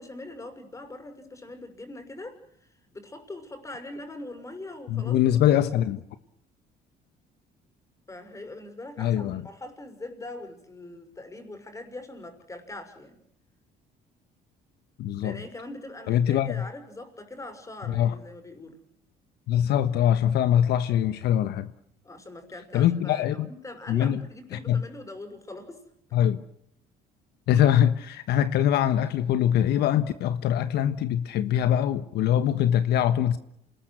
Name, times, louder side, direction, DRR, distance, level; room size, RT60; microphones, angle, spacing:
voice 1, 0.0-5.3 5.8-5.9 8.1-13.2 15.2-18.8 22.0-25.8, left 2 dB, 20° left, 6.2 m, -42 dB
voice 2, 4.9-6.0 9.0-9.4 15.0-15.4 16.1-16.6 17.9-18.1 19.5-21.7 22.7-23.5 23.9-24.2 24.5-24.8 26.1-26.4 27.5-33.4, left 10 dB, 75° left, 1.4 m, -23 dB
28.0 x 20.0 x 8.0 m
cardioid pair, 110°, 17 cm